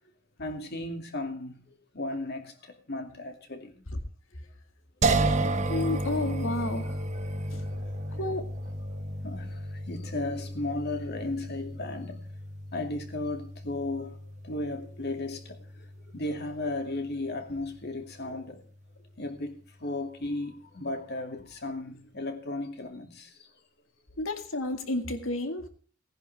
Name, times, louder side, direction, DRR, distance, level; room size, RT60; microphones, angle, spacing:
voice 1, 0.4-1.6 1.9-3.8 7.1-8.2 9.2-12.2 12.7-14.2 14.4-15.9 16.1-18.6 19.2-23.3, left 2 dB, 55° left, 2.5 m, -35 dB
sound 1, 5.0-18.1, right 2 dB, 35° right, 1.2 m, -33 dB
voice 2, 5.7-7.0 7.5-7.6 8.2-8.5 18.3-18.4 24.2-25.7, left 2 dB, 85° left, 2.0 m, -31 dB
18.5 x 10.5 x 3.5 m
head